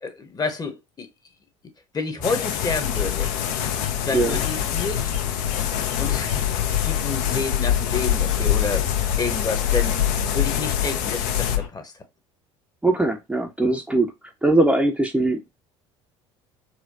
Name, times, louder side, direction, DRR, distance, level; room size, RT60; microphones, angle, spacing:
voice 1, 0.0-1.1 1.9-3.7 4.0-5.1 6.0-8.9 9.2-10.0 10.3-11.9, left 4 dB, 25° left, 0.9 m, -29 dB
sound 1, 2.2-11.6, left 9 dB, 65° left, 0.5 m, -28 dB
Bird vocalization bird call bird song, 2.7-11.7, left 10 dB, 85° left, 1.0 m, -26 dB
voice 2, 12.8-14.1 14.4-15.5, right 2 dB, 5° right, 0.6 m, -21 dB
4.2 x 2.2 x 2.7 m
hypercardioid pair, 65°, 15 cm